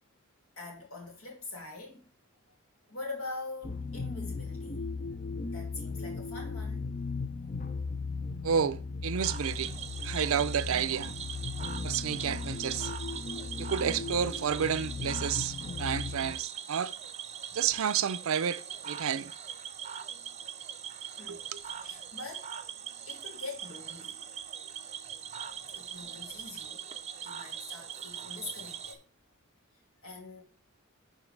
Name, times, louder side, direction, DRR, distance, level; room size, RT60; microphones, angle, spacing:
voice 1, 0.6-2.1 2.9-4.8 5.5-6.9 17.5-17.6 21.1-21.4 21.8-22.5 23.1-24.2 25.5-26.8 27.2-29.0 30.0-30.4, left 3 dB, 75° left, 2.5 m, -44 dB
sound 1, 3.6-16.3, left 4 dB, 40° left, 0.5 m, -37 dB
voice 2, 8.4-9.7 10.0-11.1 11.8-12.9 13.6-16.9 17.5-19.3 21.3-21.6, right 7 dB, 75° right, 0.5 m, -30 dB
Cricket / Frog, 9.2-28.9, right 8 dB, 30° right, 0.6 m, -41 dB
11.0 x 3.8 x 3.2 m
head